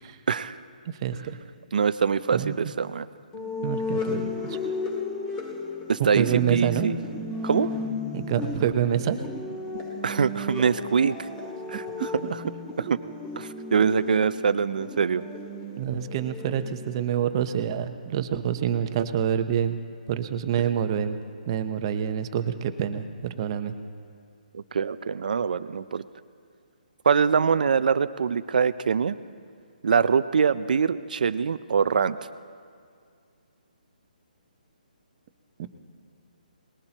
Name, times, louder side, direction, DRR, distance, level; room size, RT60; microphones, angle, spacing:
voice 1, 0.3-0.6 1.7-3.1 5.9-7.0 7.4-7.7 10.0-11.2 11.7-12.4 13.4-15.2 24.5-26.0 27.0-29.2 29.8-32.2, right 6 dB, 65° right, 14 dB, 0.6 m, -24 dB
voice 2, 0.8-1.2 2.3-2.5 3.6-4.6 6.2-6.9 8.1-9.2 12.0-12.3 15.8-19.8 20.1-21.2 21.5-23.7 35.6-35.7, right 9 dB, 35° right, 9 dB, 0.9 m, -27 dB
sound 1, 3.3-17.0, left 3 dB, 15° left, 2.2 m, -34 dB
22.5 x 20.5 x 3.0 m, 2.2 s
hypercardioid pair, 155°, 5 cm